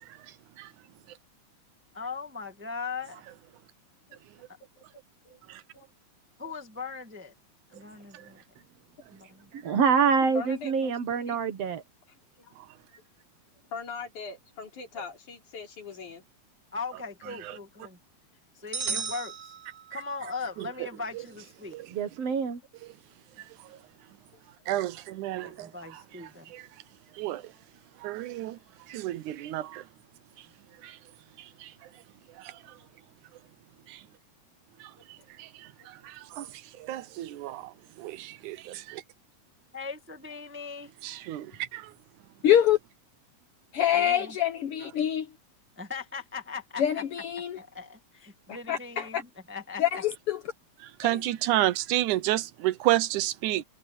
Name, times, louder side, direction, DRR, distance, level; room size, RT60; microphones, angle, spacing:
voice 1, 1.9-3.2 6.4-7.3 7.7-8.4 9.1-9.5 16.7-18.0 18.5-19.5 19.9-21.8 25.3-26.5 39.7-40.9 43.9-44.4 45.8-47.0 47.6-50.0, left 4 dB, 5° right, 0.9 m, -39 dB
voice 2, 9.5-11.8 21.9-22.6, right 6 dB, 60° right, 2.3 m, -25 dB
voice 3, 10.2-11.4 12.4-12.6 13.7-16.2 24.3-24.4 32.6-32.9 35.2-35.3 36.0-36.1 36.5-36.6 41.5-41.7, left 5 dB, 80° left, 5.4 m, -42 dB
sound 1, 18.7-20.3, right 6 dB, 40° right, 1.5 m, -35 dB
voice 4, 24.7-26.0 26.5-26.7 27.2-27.5 28.0-28.6 28.9-29.8 30.8-31.0 31.4-31.7 32.4-32.8 33.9-34.0 34.8-34.9 35.4-39.0 41.0-41.9 50.8-53.6, right 15 dB, 85° right, 2.3 m, -31 dB
voice 5, 42.4-42.8 43.7-45.3 46.8-47.6 48.7-49.2 49.8-50.4, left 10 dB, 65° left, 1.5 m, -25 dB
omnidirectional pair, 3.4 m